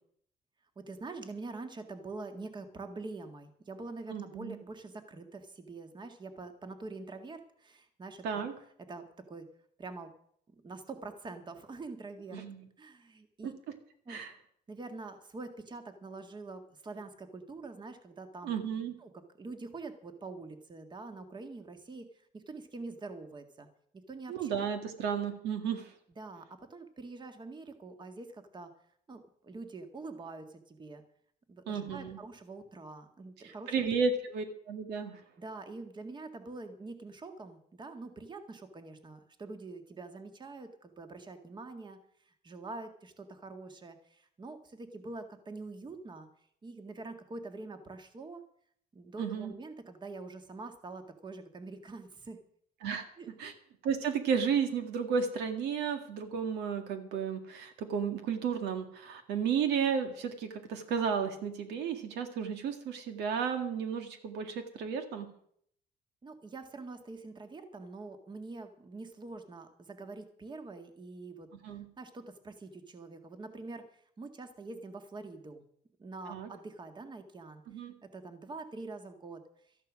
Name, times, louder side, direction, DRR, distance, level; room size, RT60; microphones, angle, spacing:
voice 1, 0.8-8.4 8.9-9.5 9.8-10.1 10.6-12.4 12.8-13.5 14.1-14.2 14.7-18.6 19.0-22.1 22.3-23.7 24.1-24.6 26.2-28.7 29.1-31.0 31.5-33.9 35.4-42.0 42.3-46.3 46.6-48.4 48.9-52.4 53.2-53.3 66.2-71.5 72.0-73.9 74.2-75.7 76.0-77.6 78.0-79.4, right 3 dB, 25° right, 7 dB, 1.8 m, -45 dB
voice 2, 4.1-4.6 8.2-8.5 12.3-12.7 13.4-13.5 14.1-14.3 18.4-19.0 24.3-25.9 31.7-32.2 33.4-35.2 49.2-49.5 52.8-53.0 53.4-53.5 53.8-65.3 71.6-71.8 76.3-76.5 77.7-77.9, right 6 dB, 80° right, 7 dB, 2.0 m, -33 dB
13.5 x 11.0 x 6.3 m, 0.64 s
cardioid pair, 110°, 17 cm